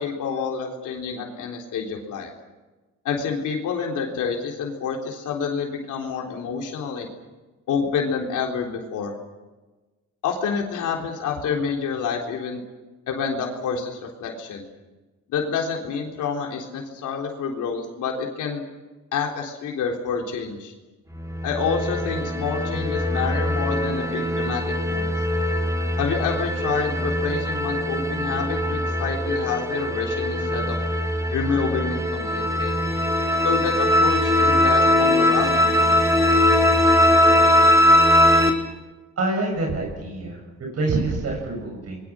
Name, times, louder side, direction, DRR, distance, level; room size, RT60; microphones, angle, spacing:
voice 1, 0.0-2.3 3.0-7.1 7.7-9.1 10.2-12.6 13.1-14.7 15.3-18.6 19.1-20.7 21.4-25.1 26.0-30.8 31.3-32.8 33.4-36.0, left 6 dB, 80° left, 0 dB, 3.8 m, -28 dB
sound 1, 21.1-38.5, left 1 dB, 10° right, 4.0 m, -21 dB
voice 2, 39.2-40.4 40.7-42.0, right 2 dB, 55° right, 0 dB, 7.8 m, -26 dB
27.0 x 22.0 x 6.4 m, 1.2 s
cardioid pair, 90°, 30 cm